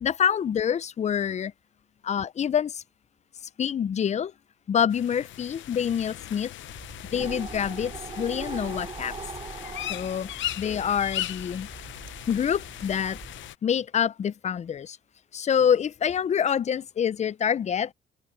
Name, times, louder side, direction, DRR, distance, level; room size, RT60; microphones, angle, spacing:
voice 1, 0.0-1.5 2.0-2.8 3.6-4.3 4.7-6.5 7.1-9.1 9.9-10.3 10.6-11.7 12.3-13.2 13.6-15.0 15.3-17.9, left 8 dB, 35° left, 0.4 m, -26 dB
sound 1, 4.9-13.6, left 14 dB, 75° left, 0.7 m, -38 dB
sound 2, 6.6-13.5, right 4 dB, 30° right, 2.4 m, -41 dB
open air
cardioid pair, 90°, 20 cm